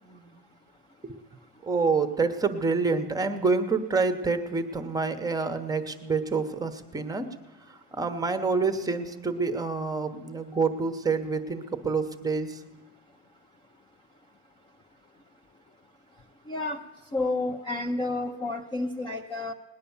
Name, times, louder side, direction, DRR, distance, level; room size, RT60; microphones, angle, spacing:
voice 1, 0.0-0.4 1.0-1.2 1.6-7.3 7.9-12.6, right 4 dB, 10° right, 9 dB, 0.8 m, -27 dB
voice 2, 16.5-16.8 17.1-19.5, left 2 dB, 15° left, 4 dB, 0.4 m, -30 dB
19.0 x 10.5 x 7.0 m, 1.1 s
cardioid pair, 175°, 35 cm